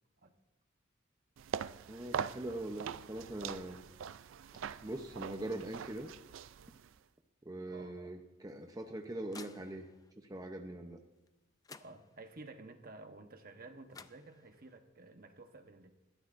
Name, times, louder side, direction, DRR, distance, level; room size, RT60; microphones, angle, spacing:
sound 1, 1.4-7.0, right 7 dB, 75° right, 0.4 m, -43 dB
voice 1, 1.9-3.8 4.8-6.1 7.4-9.9 10.2-11.0, right 1 dB, 20° right, 4 dB, 0.7 m, -42 dB
voice 2, 7.7-8.0 11.8-16.0, right 2 dB, 45° right, 6 dB, 1.0 m, -52 dB
sound 2, 8.5-10.1 11.3-11.4 11.6-12.5 13.6-13.7 13.9-14.8, left 5 dB, 20° left, 0.4 m, -56 dB
21.0 x 13.5 x 2.6 m, 1.0 s
head